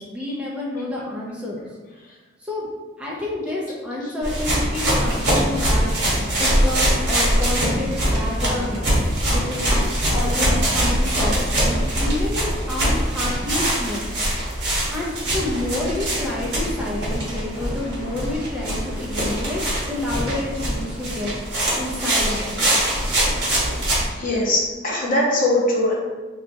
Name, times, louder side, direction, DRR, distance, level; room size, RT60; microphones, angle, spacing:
voice 1, 0.0-1.6 2.4-2.7 3.0-5.9 6.2-14.1 14.9-19.6 19.9-22.7, left 1 dB, 5° right, -6 dB, 0.4 m, -29 dB
sound 1, 4.2-24.0, right 1 dB, 60° right, 1.0 m, -23 dB
voice 2, 24.1-25.9, left 1 dB, 45° left, -3 dB, 0.7 m, -21 dB
4.1 x 2.3 x 2.6 m, 1.3 s
head